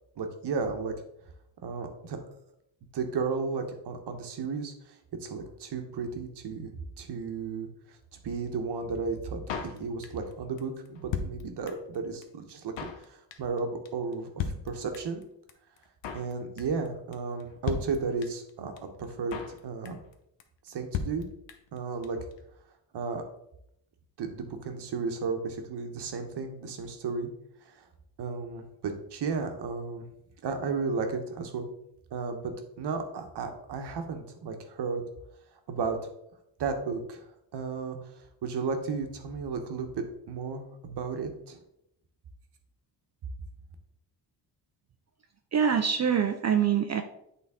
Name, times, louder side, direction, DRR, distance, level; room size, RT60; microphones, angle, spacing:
voice 1, 0.2-0.9 1.6-2.2 2.9-4.9 5.2-7.7 8.2-15.2 16.1-19.4 19.6-20.0 20.6-21.3 21.7-22.2 22.9-23.2 24.2-27.3 27.7-27.8 28.2-30.0 30.4-31.7 32.1-35.0 35.7-36.0 36.6-37.2 37.5-38.0 38.4-41.6, right 4 dB, 65° right, 5 dB, 1.1 m, -34 dB
Drum kit, 9.5-10.3 10.6-10.7 10.9-12.0 12.2-12.3 12.5-13.0 13.3-13.6 13.9-14.0 14.1-14.2 14.4-15.2 15.5-15.6 15.8-16.3 16.6-16.9 17.1-17.2 17.4-17.5 17.7-18.5 18.8-18.9 19.0-19.6 19.9-20.1 20.4-20.5 20.7-20.8 20.9-21.8 22.0-22.1 22.3-22.4, left 6 dB, 85° left, 0.8 m, -35 dB
voice 2, 45.5-47.0, right 7 dB, 40° right, 7 dB, 0.4 m, -24 dB
8.3 x 3.8 x 3.6 m, 0.77 s
cardioid pair, 120°, 43 cm